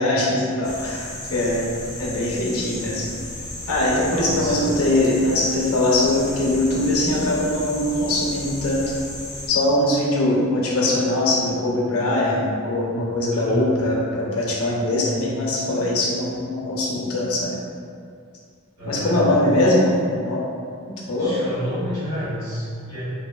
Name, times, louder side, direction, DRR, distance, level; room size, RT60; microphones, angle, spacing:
voice 1, 0.0-1.7 2.0-3.1 3.7-9.0 9.5-17.5 18.9-20.4 21.1-21.3, left 1 dB, 70° left, -3 dB, 0.5 m, -21 dB
sound 1, 0.6-9.5, left 1 dB, 20° left, 0.4 m, -34 dB
voice 2, 4.0-4.5 13.3-13.6 18.8-19.4 21.2-23.0, equal, 85° right, -9 dB, 1.1 m, -30 dB
2.7 x 2.2 x 2.2 m, 2.3 s
head